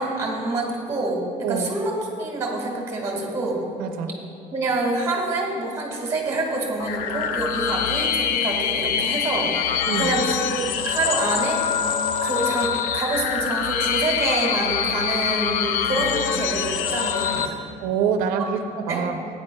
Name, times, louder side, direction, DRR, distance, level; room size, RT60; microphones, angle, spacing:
voice 1, 0.0-3.6 4.5-9.5 9.9-11.6 12.2-17.6 18.4-18.5 18.9-19.0, right 2 dB, 20° right, -1 dB, 1.6 m, -26 dB
voice 2, 3.8-4.1 9.9-10.1 17.8-19.2, right 7 dB, 90° right, 6 dB, 0.6 m, -25 dB
sound 1, 6.8-17.5, left 8 dB, 80° left, 0.5 m, -24 dB
15.0 x 9.3 x 2.2 m, 2.5 s
cardioid pair, 165°, 14 cm